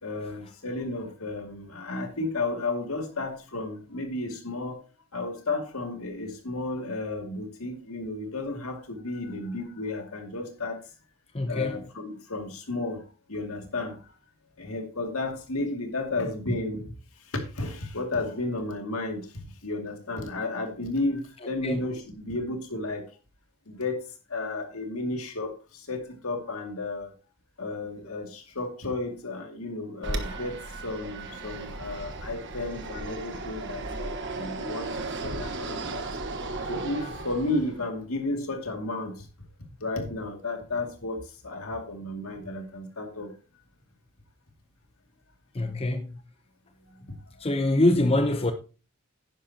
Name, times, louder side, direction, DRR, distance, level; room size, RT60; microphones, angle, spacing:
voice 1, 0.0-4.8 5.1-10.8 11.5-13.0 13.3-14.1 14.6-23.1 23.7-24.0 24.3-27.1 27.6-36.0 36.6-39.3 39.8-43.3 46.9-47.3, left 2 dB, 70° left, 2.4 m, -33 dB
voice 2, 11.3-11.8 21.6-21.8 45.5-46.1 47.4-48.5, left 1 dB, 25° left, 0.7 m, -24 dB
Fixed-wing aircraft airplane, 30.0-37.8, right 2 dB, 55° right, 1.3 m, -35 dB
10.5 x 10.5 x 2.9 m
head